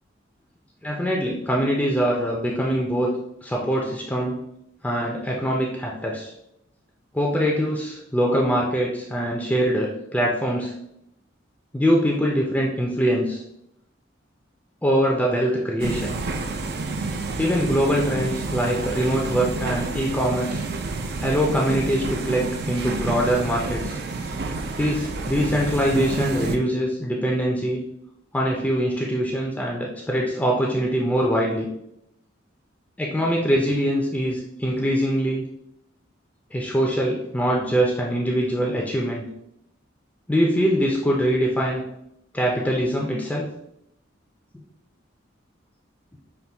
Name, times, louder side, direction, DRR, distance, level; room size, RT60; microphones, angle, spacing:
voice 1, 0.8-4.4 4.8-6.3 7.1-10.7 11.7-13.4 14.8-16.2 17.4-20.6 21.2-24.0 24.8-27.8 28.3-31.7 33.0-35.4 36.5-39.3 40.3-41.8 42.3-43.5, equal, 5° left, -2 dB, 0.5 m, -23 dB
sound 1, 15.8-26.6, right 3 dB, 55° right, 0.4 m, -29 dB
5.7 x 2.3 x 3.3 m, 0.77 s
head